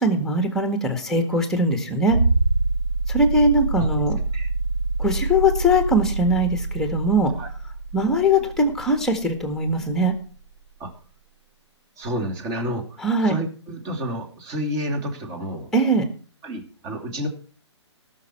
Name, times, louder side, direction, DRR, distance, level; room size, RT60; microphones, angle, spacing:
voice 1, 0.0-2.2 3.1-4.2 5.0-7.3 7.9-10.1 13.0-13.4 15.7-16.1, equal, 5° left, 7 dB, 1.7 m, -21 dB
sound 1, 2.1-10.5 12.0-12.1, right 3 dB, 75° right, 1.7 m, -26 dB
voice 2, 12.0-13.0 13.2-15.7 16.4-17.3, equal, 25° right, 3 dB, 2.7 m, -30 dB
18.5 x 6.5 x 4.5 m, 0.41 s
figure-of-eight pair, 130°, 15 cm